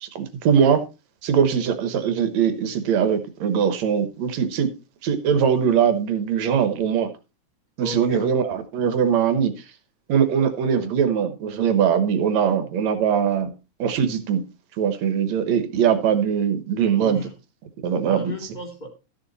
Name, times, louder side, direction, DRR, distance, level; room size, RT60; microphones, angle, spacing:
voice 1, 0.0-0.8 1.2-4.7 5.0-7.1 7.8-9.5 10.1-13.5 13.8-14.4 14.8-17.3 17.8-18.3, right 7 dB, 70° right, 2.4 m, -21 dB
voice 2, 7.8-8.2 16.9-17.3 17.9-18.9, left 2 dB, 15° left, 2.7 m, -35 dB
13.5 x 7.0 x 4.0 m
omnidirectional pair, 3.3 m